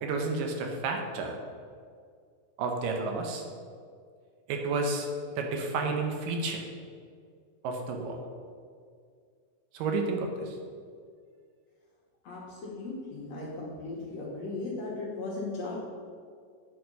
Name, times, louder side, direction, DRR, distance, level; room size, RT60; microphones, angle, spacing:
voice 1, 0.0-1.4 2.6-3.4 4.5-5.1 5.4-6.6 7.6-8.2 9.7-10.5, right 3 dB, 80° right, 3 dB, 2.5 m, -31 dB
voice 2, 12.2-15.8, left 3 dB, 65° left, -4 dB, 1.9 m, -37 dB
9.0 x 4.3 x 5.2 m, 2.1 s
omnidirectional pair, 3.9 m